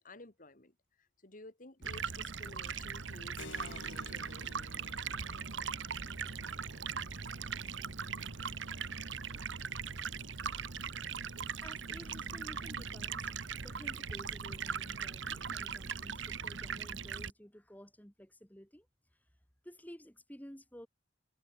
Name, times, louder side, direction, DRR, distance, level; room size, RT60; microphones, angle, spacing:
voice 1, 0.0-4.8, left 2 dB, 45° left, 2.3 m, -54 dB
Stream, 1.8-17.3, right 6 dB, 75° right, 1.4 m, -40 dB
Keyboard (musical), 3.4-11.6, left 3 dB, 75° left, 3.1 m, -57 dB
voice 2, 11.2-13.3 13.6-18.9 19.6-20.9, equal, 10° left, 3.7 m, -53 dB
head